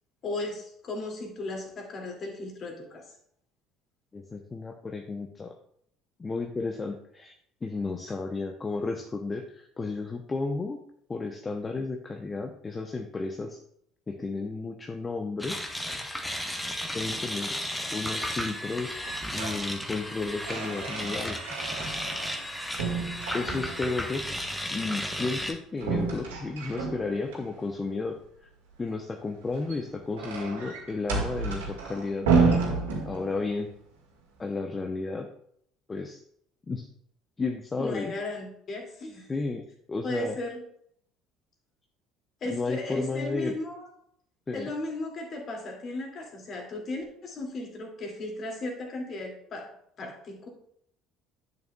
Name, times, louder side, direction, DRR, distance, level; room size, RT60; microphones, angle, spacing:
voice 1, 0.2-3.0 37.8-39.3 40.0-40.6 42.4-43.9 44.5-49.7 50.0-50.5, left 2 dB, 45° left, 2 dB, 2.3 m, -36 dB
voice 2, 4.1-5.5 6.2-7.3 7.6-10.8 11.1-13.6 14.1-15.6 16.9-17.6 17.9-21.4 23.3-24.2 24.7-28.2 28.8-32.3 33.1-33.7 34.4-35.3 35.9-36.2 36.7-36.9 37.4-38.1 39.3-40.4 42.5-43.5 44.5-44.7, left 3 dB, 25° left, 4 dB, 0.7 m, -33 dB
sound 1, 15.4-25.5, equal, 5° left, 1.1 m, -34 dB
sound 2, 19.0-19.6 20.0-22.5 22.8-24.0 25.8-27.4 29.4-33.6, right 4 dB, 75° right, 1.7 m, -30 dB
10.5 x 6.8 x 2.3 m, 0.69 s
figure-of-eight pair, 60°, 0 cm